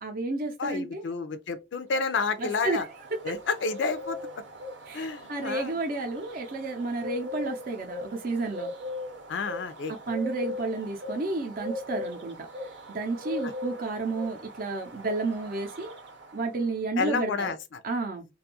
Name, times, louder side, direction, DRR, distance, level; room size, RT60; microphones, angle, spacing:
voice 1, 0.0-1.1 2.4-2.9 4.9-8.7 10.1-12.4 12.9-15.9 16.3-17.5 17.8-18.3, right 3 dB, 50° right, 0.5 m, -31 dB
voice 2, 0.6-2.9 3.2-4.2 4.9-5.7 9.3-10.1 13.4-13.5 17.0-17.8, left 4 dB, 80° left, 0.4 m, -30 dB
sound 1, 2.1-16.7, left 1 dB, 90° right, 0.8 m, -40 dB
2.5 x 2.3 x 2.8 m
head